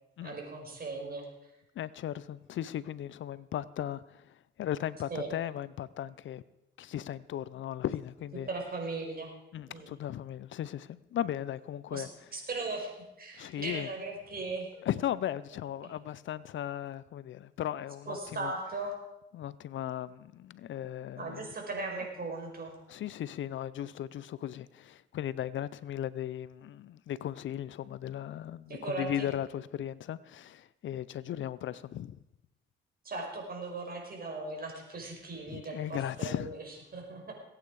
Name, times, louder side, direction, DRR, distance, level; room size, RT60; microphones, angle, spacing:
voice 1, 0.2-1.5 5.1-5.3 8.5-9.3 9.7-9.9 11.9-14.7 18.0-18.9 21.1-22.7 28.7-29.3 33.0-37.3, right 3 dB, 45° right, 5.0 m, -38 dB
voice 2, 1.8-6.4 6.8-8.5 9.5-12.1 13.4-13.9 14.8-18.5 19.3-21.5 22.9-32.2 35.5-36.5, left 11 dB, 65° left, 0.6 m, -37 dB
21.5 x 9.0 x 4.8 m
cardioid pair, 75°, 21 cm